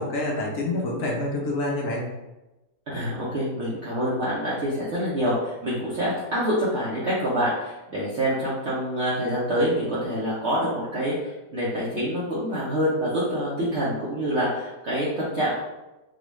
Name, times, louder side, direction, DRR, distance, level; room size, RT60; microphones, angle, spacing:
voice 1, 0.0-2.0, left 2 dB, 60° left, -2 dB, 1.1 m, -27 dB
voice 2, 2.9-15.6, equal, 55° right, -8 dB, 0.8 m, -26 dB
3.8 x 2.4 x 3.1 m, 1.0 s
omnidirectional pair, 1.8 m